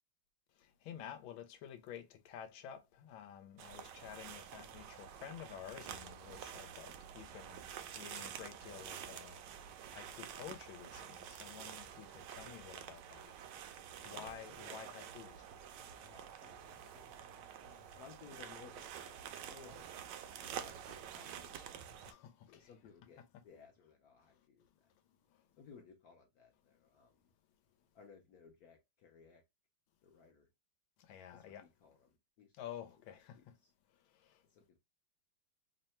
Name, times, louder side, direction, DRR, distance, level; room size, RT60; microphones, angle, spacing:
voice 1, 0.8-7.6 8.0-9.4 9.9-13.3 14.0-15.5 17.3-17.8 22.0-22.7 31.1-31.6 32.6-33.4, left 9 dB, 90° left, 1.5 m, -51 dB
sound 1, 3.6-22.1, right 9 dB, 75° right, 1.0 m, -49 dB
voice 2, 14.1-14.8 15.9-17.5 17.9-19.9 20.5-21.6 22.5-24.9 25.6-27.2 27.9-29.4 30.0-30.5 31.3-32.5 32.9-33.7 34.5-34.8, left 6 dB, 75° left, 0.9 m, -60 dB
3.7 x 2.1 x 4.2 m
omnidirectional pair, 2.2 m